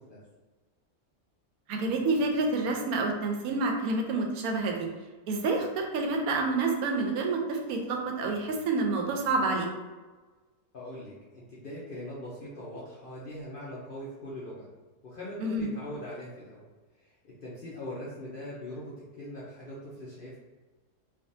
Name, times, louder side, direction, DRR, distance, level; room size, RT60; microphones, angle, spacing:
voice 1, 1.7-4.9 5.3-9.7 15.4-15.7, right 3 dB, 80° right, 2 dB, 1.0 m, -28 dB
voice 2, 10.7-14.7 15.0-16.6 17.0-20.4, left 1 dB, 55° left, -7 dB, 0.6 m, -41 dB
3.4 x 2.3 x 2.6 m, 1.3 s
omnidirectional pair, 1.5 m